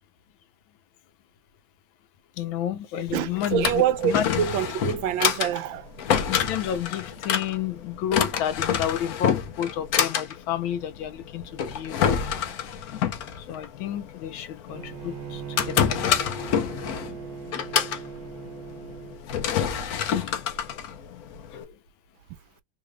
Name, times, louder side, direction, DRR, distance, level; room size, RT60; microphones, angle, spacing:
voice 1, 2.4-4.3 6.3-12.4 13.4-15.9 21.5-21.7, left 10 dB, 80° left, 1.5 m, -31 dB
Drawer open or close, 3.1-21.6, left 8 dB, 65° left, 1.0 m, -28 dB
voice 2, 3.1-5.9, right 10 dB, 80° right, 1.3 m, -26 dB
Bowed string instrument, 14.7-19.2, right 8 dB, 55° right, 1.5 m, -39 dB
3.7 x 3.1 x 2.2 m
omnidirectional pair, 2.2 m